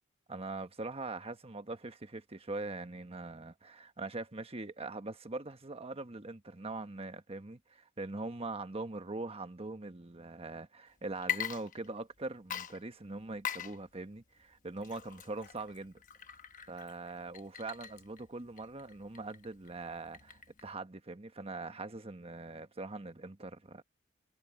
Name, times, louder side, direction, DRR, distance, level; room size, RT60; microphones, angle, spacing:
voice 1, 0.3-16.0 16.7-23.8, right 2 dB, 30° right, 1.2 m, -42 dB
Water / Liquid, 11.1-12.2 12.5-20.7, left 9 dB, 40° left, 1.0 m, -42 dB
head